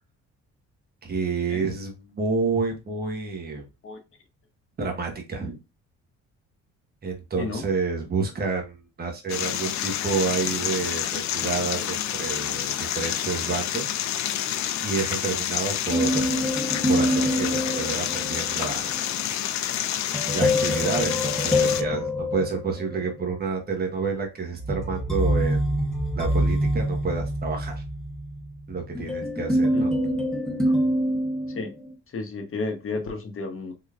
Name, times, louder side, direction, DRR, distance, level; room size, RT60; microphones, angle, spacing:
voice 1, 1.0-3.7 4.8-5.6 7.0-13.9 14.8-16.3 16.9-19.0 20.3-25.6 26.1-27.8 28.7-29.9, right 4 dB, 30° right, 1.2 m, -29 dB
sound 1, 9.3-21.8, left 11 dB, 65° left, 0.5 m, -28 dB
sound 2, 15.9-18.5 20.1-23.1 24.5-31.9, equal, ahead, 0.9 m, -25 dB
voice 2, 32.1-33.7, left 3 dB, 45° left, 1.1 m, -31 dB
3.8 x 3.0 x 2.4 m
cardioid pair, 90°, 30 cm